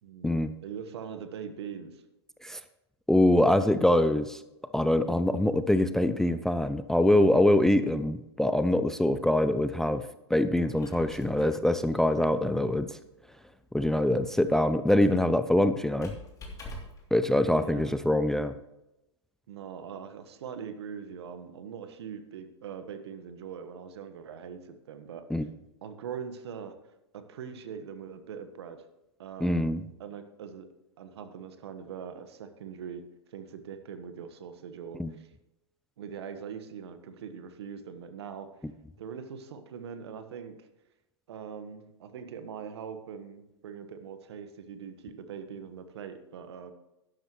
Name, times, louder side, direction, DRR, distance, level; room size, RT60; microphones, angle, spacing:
voice 1, 0.0-2.0 17.5-18.0 19.5-25.4 25.8-26.8 27.1-28.8 29.2-29.6 30.0-30.7 31.0-33.0 33.3-35.3 36.0-38.5 39.0-40.7 41.3-46.7, right 7 dB, 65° right, 9 dB, 1.4 m, -42 dB
voice 2, 3.1-4.4 4.7-10.0 10.3-13.0 13.7-16.1 17.1-18.5 25.3-25.5 29.4-29.8 35.0-35.1, left 1 dB, 5° left, 12 dB, 0.4 m, -24 dB
Squeak, 10.5-17.1, left 1 dB, 25° left, 3.0 m, -48 dB
12.0 x 11.5 x 3.1 m, 0.94 s
hypercardioid pair, 110°, 15 cm